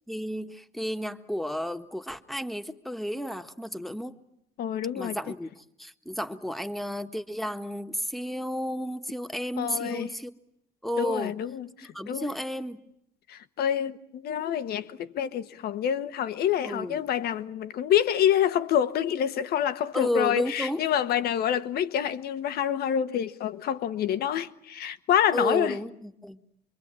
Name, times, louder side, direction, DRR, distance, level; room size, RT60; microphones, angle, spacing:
voice 1, 0.1-4.1 4.9-10.3 10.8-11.3 11.9-12.8 16.6-17.0 19.9-20.9 25.3-26.4, equal, ahead, 1.6 m, -32 dB
voice 2, 4.6-5.2 9.6-10.1 11.0-12.3 13.3-25.8, left 10 dB, 70° left, 1.4 m, -27 dB
26.5 x 23.0 x 9.0 m
cardioid pair, 110°, 17 cm